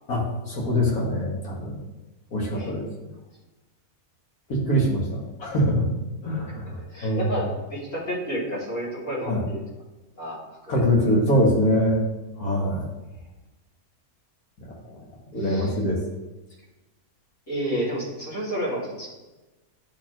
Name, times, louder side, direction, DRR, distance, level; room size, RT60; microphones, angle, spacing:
voice 1, 0.1-1.8 2.3-2.9 4.5-5.9 6.2-6.8 7.0-7.3 9.3-9.4 10.7-12.0 12.4-12.8 15.3-16.0, equal, 75° left, -3 dB, 2.2 m, -23 dB
voice 2, 6.9-9.6 10.2-10.4 10.6-11.1 15.4-15.8 17.5-19.1, equal, 55° left, -8 dB, 3.0 m, -31 dB
11.5 x 4.3 x 3.0 m, 1.1 s
omnidirectional pair, 1.6 m